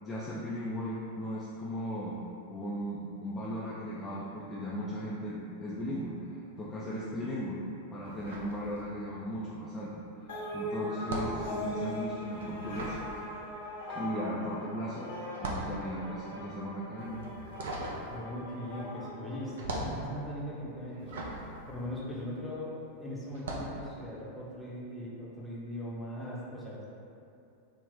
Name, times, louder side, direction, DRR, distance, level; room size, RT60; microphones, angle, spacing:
voice 1, 0.0-2.2 2.5-7.6 7.9-13.0 13.9-15.1 15.4-17.2, equal, 15° left, -7 dB, 0.3 m, -37 dB
sound 1, 8.0-9.3 9.5-22.7 23.3-23.8, right 2 dB, 60° right, 0.4 m, -41 dB
sound 2, 10.3-20.1, left 1 dB, 60° left, 0.8 m, -40 dB
voice 2, 17.8-21.2 21.7-26.9, equal, ahead, -8 dB, 0.7 m, -40 dB
2.9 x 2.0 x 3.7 m, 2.6 s
figure-of-eight pair, 90°, 0 cm